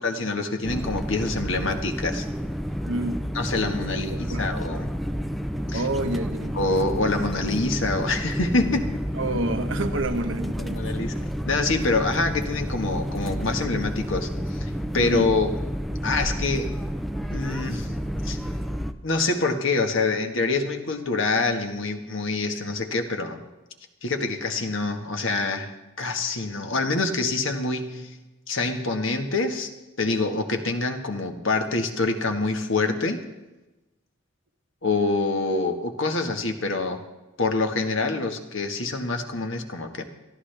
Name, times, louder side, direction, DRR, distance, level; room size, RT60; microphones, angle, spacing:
voice 1, 0.0-2.2 3.3-4.9 5.7-5.8 6.6-8.9 10.6-11.2 11.4-14.3 14.5-15.5 16.0-16.8 17.3-17.9 18.2-18.4 19.0-23.4 24.0-25.7 26.0-28.1 28.5-29.7 30.0-33.2 34.8-37.0 37.4-40.0, left 3 dB, 70° left, 5 dB, 1.6 m, -26 dB
sound 1, 0.6-18.9, equal, ahead, 0.6 m, -30 dB
voice 2, 2.8-3.3 4.1-4.5 5.7-6.6 9.1-11.1 15.0-15.3, right 1 dB, 65° right, 6 dB, 1.3 m, -29 dB
23.5 x 14.0 x 3.4 m, 1.1 s
head